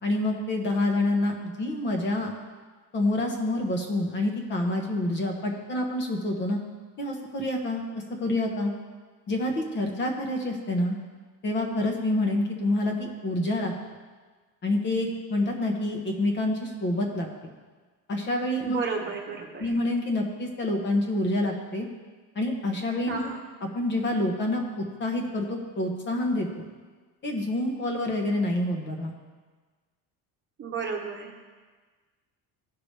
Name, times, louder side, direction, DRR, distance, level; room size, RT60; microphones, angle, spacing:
voice 1, 0.0-2.3 2.9-6.6 7.0-7.8 8.2-8.7 9.3-11.0 11.4-13.7 14.6-17.3 18.1-18.8 19.6-21.9 22.3-23.3 23.7-24.6 25.0-26.6 27.2-29.1, left 1 dB, 30° left, 2 dB, 1.1 m, -27 dB
voice 2, 18.6-19.7 23.1-23.5 30.6-31.3, right 5 dB, 30° right, 0 dB, 1.1 m, -33 dB
16.0 x 5.9 x 3.3 m, 1.4 s
cardioid pair, 175°, 36 cm